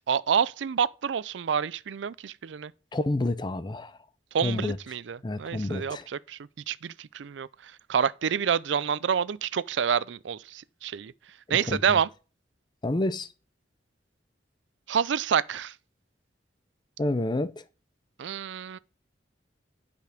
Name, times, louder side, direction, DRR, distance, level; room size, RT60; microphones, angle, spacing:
voice 1, 0.0-2.7 4.3-6.4 6.7-7.5 7.9-11.1 11.5-12.1 14.9-15.7 18.2-18.8, right 7 dB, 80° right, 0.4 m, -28 dB
voice 2, 2.9-4.0 4.4-4.8 5.2-6.1 11.5-12.0 12.8-13.3 17.0-17.6, left 2 dB, 25° left, 0.5 m, -29 dB
9.4 x 5.2 x 5.0 m
head